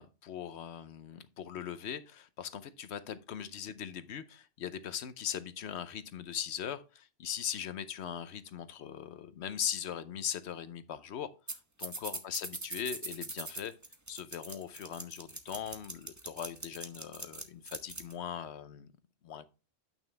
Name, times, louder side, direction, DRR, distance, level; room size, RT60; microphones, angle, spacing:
voice 1, 0.0-11.3 11.8-13.7 14.1-18.9 19.2-19.4, left 9 dB, 85° left, 1.0 m, -40 dB
sound 1, 11.5-11.6 11.8-18.1, right 2 dB, 20° right, 0.8 m, -41 dB
9.0 x 6.1 x 3.3 m
omnidirectional pair, 1.1 m